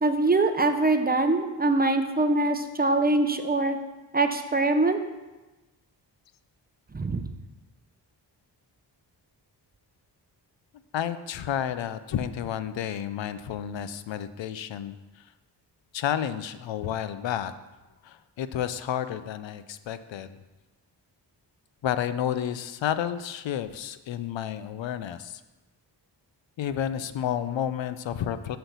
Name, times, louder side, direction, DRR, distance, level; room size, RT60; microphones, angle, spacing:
voice 1, 0.0-3.8 4.1-5.0 6.9-7.2, right 2 dB, 20° right, 7 dB, 0.6 m, -23 dB
voice 2, 10.9-14.9 15.9-17.5 18.0-20.4 21.8-25.4 26.6-28.6, left 10 dB, 85° left, 12 dB, 0.6 m, -31 dB
7.6 x 4.5 x 6.8 m, 1.1 s
cardioid pair, 90°, 44 cm